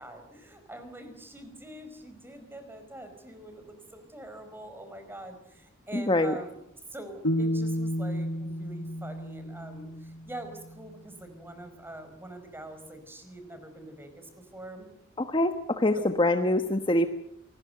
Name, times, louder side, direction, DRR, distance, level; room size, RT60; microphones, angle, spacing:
voice 1, 0.0-6.6 6.9-14.9 15.9-16.1, right 1 dB, 10° right, 8 dB, 4.7 m, -44 dB
voice 2, 5.9-6.3 15.2-17.1, left 1 dB, 25° left, 8 dB, 1.1 m, -24 dB
sound 1, 7.2-10.4, equal, 80° left, 3.8 m, -31 dB
27.0 x 19.5 x 7.9 m, 0.78 s
head